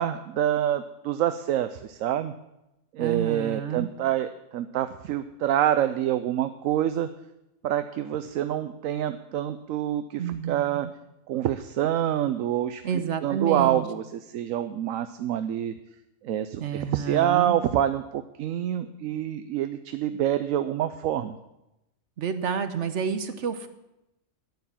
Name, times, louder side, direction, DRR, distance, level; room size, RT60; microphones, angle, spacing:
voice 1, 0.0-2.3 2.9-7.1 7.6-10.9 11.3-12.8 13.2-14.0 14.3-15.7 16.2-21.3, right 11 dB, 85° right, 11 dB, 1.0 m, -26 dB
voice 2, 3.0-3.9 10.2-10.9 12.8-13.8 16.6-17.6 22.2-23.7, right 7 dB, 65° right, 10 dB, 1.1 m, -29 dB
10.0 x 9.1 x 7.3 m, 0.89 s
omnidirectional pair, 1.4 m